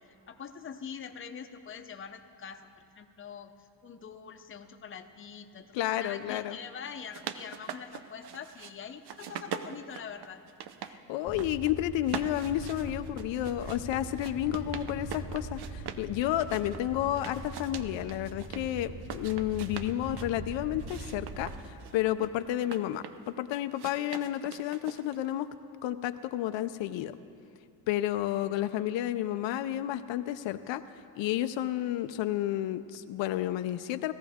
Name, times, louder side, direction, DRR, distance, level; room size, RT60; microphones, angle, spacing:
voice 1, 0.0-2.7 3.0-5.7 6.0-10.4 30.7-30.8, left 7 dB, 30° left, 6 dB, 0.6 m, -44 dB
voice 2, 5.7-6.6 10.9-23.0 23.4-25.5 25.8-27.2 27.9-30.8 31.2-34.1, left 13 dB, 80° left, 10 dB, 0.5 m, -31 dB
sound 1, 6.9-8.7 9.0-10.9 11.2-11.7 12.0-16.1 16.4-18.6 19.0-20.3 20.8-23.3 23.7-25.3, right 9 dB, 60° right, 0.7 m, -42 dB
sound 2, 11.2-21.5, right 1 dB, 40° right, 4.0 m, -42 dB
17.5 x 14.0 x 3.5 m, 2.6 s
cardioid pair, 110°, 44 cm